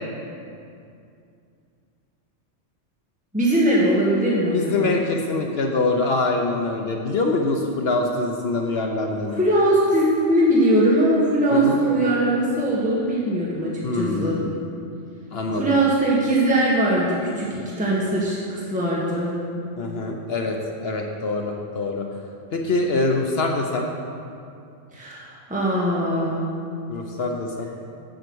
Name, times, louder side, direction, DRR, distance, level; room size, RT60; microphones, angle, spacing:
voice 1, 3.3-5.0 9.4-14.4 15.5-19.3 24.9-26.4, right 1 dB, 5° right, -7 dB, 1.5 m, -21 dB
voice 2, 4.5-9.4 11.5-11.8 13.8-14.6 15.3-15.8 19.8-22.2 22.5-23.9 26.9-27.7, left 2 dB, 60° left, 2 dB, 1.0 m, -24 dB
8.0 x 7.7 x 6.2 m, 2.5 s
omnidirectional pair, 1.2 m